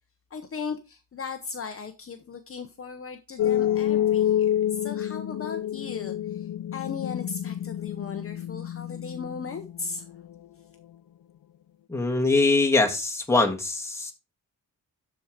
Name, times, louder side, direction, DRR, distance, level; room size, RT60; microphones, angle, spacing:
voice 1, 0.3-10.1, left 5 dB, 40° left, 0.8 m, -37 dB
sound 1, 3.4-10.3, left 11 dB, 70° left, 0.5 m, -28 dB
voice 2, 11.9-14.1, left 3 dB, 10° left, 1.6 m, -23 dB
12.5 x 4.6 x 5.0 m
wide cardioid pair, 145°, 35 cm